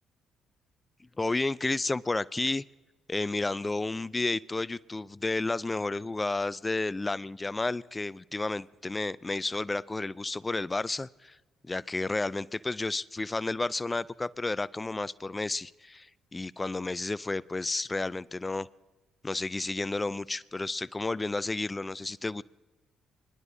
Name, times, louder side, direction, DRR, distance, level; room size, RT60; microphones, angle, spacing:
voice 1, 1.2-2.6 3.1-11.4 11.7-18.7 19.2-22.4, left 2 dB, 20° left, 21 dB, 0.4 m, -31 dB
24.0 x 11.5 x 2.7 m, 1.2 s
hypercardioid pair, 55°, 0 cm